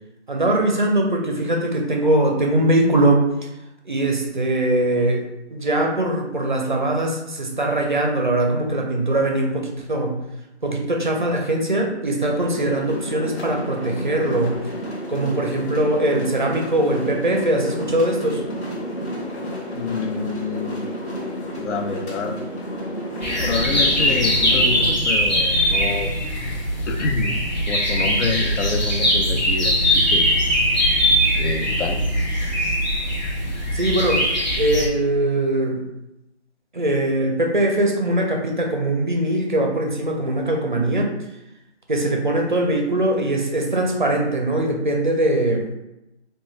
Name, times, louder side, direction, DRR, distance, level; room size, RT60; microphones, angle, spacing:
voice 1, 0.3-3.3 3.9-5.3 5.5-10.2 10.6-14.6 15.1-18.4 33.7-35.8 36.7-41.1 41.9-45.7, right 1 dB, 45° right, 1 dB, 0.4 m, -21 dB
sound 1, 12.2-24.9, equal, 70° left, 0.9 m, -31 dB
voice 2, 19.7-20.8 21.6-22.4 23.4-26.2 26.9-27.3 27.7-30.3 31.4-32.0, left 4 dB, 85° left, 4 dB, 0.6 m, -27 dB
sound 2, 23.2-34.9, equal, 40° left, 0.7 m, -21 dB
2.8 x 2.2 x 3.0 m, 0.91 s
figure-of-eight pair, 170°, 34 cm